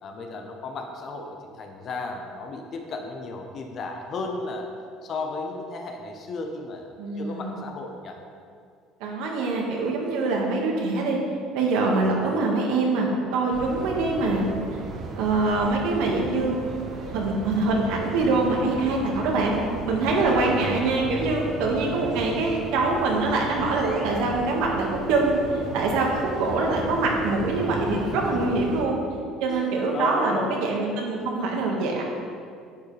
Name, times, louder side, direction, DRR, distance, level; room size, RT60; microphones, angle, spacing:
voice 1, 0.0-4.7 5.0-8.2 19.9-20.5 28.2-28.4 29.5-30.5, left 3 dB, 35° left, 3 dB, 0.9 m, -34 dB
voice 2, 7.0-7.6 9.0-11.2 11.5-14.8 15.2-19.6 19.8-29.0 29.4-32.0, right 3 dB, 75° right, -1 dB, 1.8 m, -24 dB
sound 1, 13.5-28.8, right 2 dB, 35° right, 1.1 m, -35 dB
10.5 x 8.4 x 3.4 m, 2.2 s
cardioid pair, 180°, 0 cm